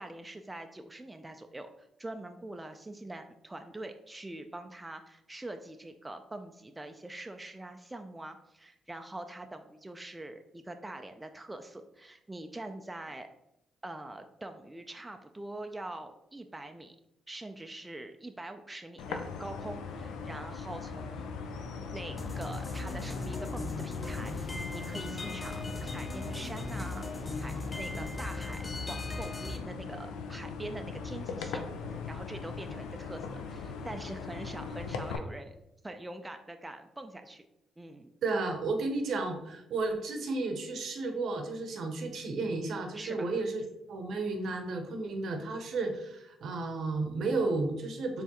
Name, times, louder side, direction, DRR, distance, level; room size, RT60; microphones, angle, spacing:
voice 1, 0.0-13.3 13.8-17.0 17.3-21.3 21.9-27.0 27.4-28.6 28.9-31.6 31.9-35.5 35.8-37.4 37.8-38.1 42.9-43.3, right 2 dB, 15° right, 6 dB, 0.4 m, -44 dB
sound 1, 19.0-35.2, left 5 dB, 85° left, 0.4 m, -40 dB
sound 2, 22.2-29.6, left 2 dB, 25° left, 0.6 m, -39 dB
voice 2, 38.2-43.6 43.9-48.2, right 3 dB, 70° right, 5 dB, 0.7 m, -33 dB
4.4 x 3.3 x 2.9 m, 0.85 s
supercardioid pair, 55°, 0 cm